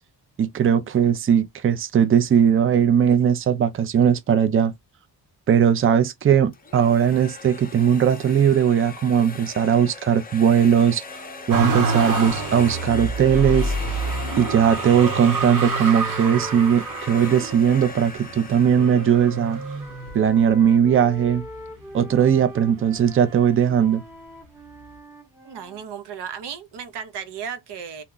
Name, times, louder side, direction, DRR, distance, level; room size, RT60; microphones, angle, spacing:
voice 1, 0.4-4.7 5.5-11.0 11.5-13.7 14.4-19.6 20.1-21.4 21.9-24.0, right 8 dB, 30° right, 0.4 m, -19 dB
sound 1, 6.5-20.4, left 4 dB, 20° left, 0.5 m, -39 dB
sound 2, 11.0-18.0 18.7-25.9, equal, 5° right, 0.8 m, -42 dB
Motor vehicle (road), 11.5-20.6 21.2-22.0 22.3-23.4 24.4-24.5, right 3 dB, 50° right, 1.0 m, -28 dB
voice 2, 25.4-28.0, right 7 dB, 70° right, 0.7 m, -35 dB
2.9 x 2.2 x 3.7 m
wide cardioid pair, 120°, 43 cm